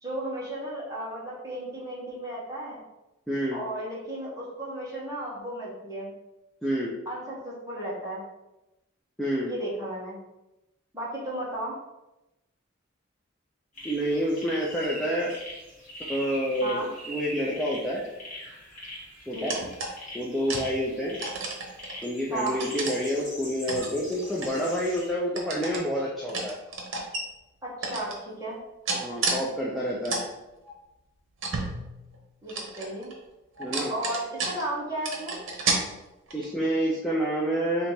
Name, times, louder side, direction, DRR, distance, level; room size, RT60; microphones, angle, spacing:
voice 1, 0.0-2.8 3.5-6.1 7.0-8.2 9.4-10.2 10.9-11.7 16.6-16.9 19.3-19.7 22.3-22.6 27.6-28.6 32.4-33.1 33.9-35.4, right 1 dB, 15° right, -7 dB, 1.2 m, -34 dB
voice 2, 3.3-3.6 6.6-6.9 9.2-9.5 13.8-15.3 16.1-18.0 19.3-19.6 20.1-21.2 22.0-26.6 28.9-30.2 33.6-33.9 36.3-37.9, equal, ahead, -6 dB, 0.4 m, -28 dB
sound 1, 13.8-25.1, left 1 dB, 35° left, 1.3 m, -42 dB
sound 2, 19.5-20.0 20.5-20.7 21.2-22.1 22.5-23.0 23.7-25.0 25.4-25.8 26.3-27.2 27.8-28.2 28.9-29.4 29.8-30.2 30.6-30.7 31.4-32.2 32.5-33.1 33.6-34.8 35.0-35.8 36.3-36.6, right 3 dB, 80° right, 0.9 m, -31 dB
3.3 x 2.9 x 4.2 m, 0.96 s
head